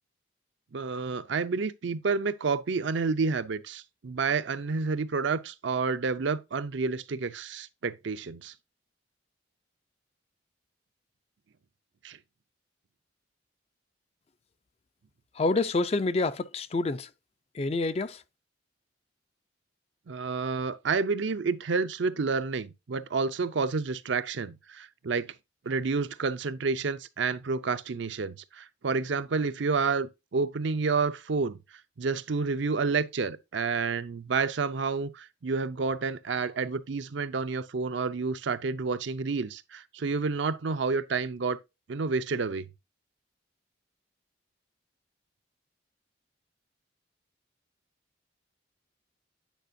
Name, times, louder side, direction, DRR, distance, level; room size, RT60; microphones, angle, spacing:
voice 1, 0.7-8.5 12.0-12.2 20.1-25.3 25.7-31.6 32.0-41.6 41.9-42.7, right 4 dB, 70° right, 0.5 m, -29 dB
voice 2, 15.4-17.1 17.5-18.2, left 3 dB, 30° left, 0.4 m, -27 dB
9.2 x 5.0 x 2.6 m
head